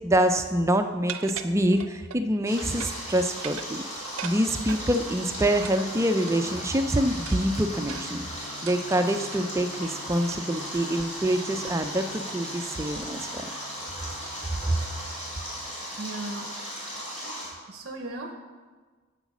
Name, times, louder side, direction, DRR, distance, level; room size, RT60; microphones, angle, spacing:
voice 1, 0.0-3.8 4.2-8.2 8.6-13.4 14.7-14.8, right 1 dB, 15° right, 7 dB, 0.4 m, -25 dB
sound 1, 1.1-2.2 2.6-3.1 3.3-4.9 5.6-6.6 7.3-9.5 10.3-10.6 11.0-11.1 11.7-11.9 12.2-12.5 13.0-13.3, right 8 dB, 75° right, 0.5 m, -41 dB
Stream, 2.5-17.5, equal, 35° left, 3.2 m, -37 dB
sound 2, 5.4-15.7, left 3 dB, 60° left, 1.7 m, -49 dB
voice 2, 16.0-16.6 17.7-18.3, right 2 dB, 50° right, 5 dB, 0.8 m, -36 dB
8.1 x 8.0 x 6.1 m, 1.4 s
head